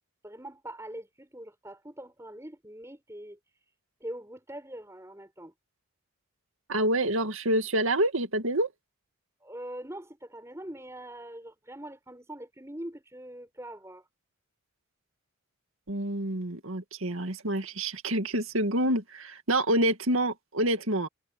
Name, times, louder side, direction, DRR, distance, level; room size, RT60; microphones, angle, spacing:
voice 1, 0.2-3.7 4.0-5.5 9.4-14.1, right 1 dB, 15° right, 5.7 m, -43 dB
voice 2, 6.7-8.7 15.9-21.1, right 1 dB, 75° right, 2.2 m, -27 dB
head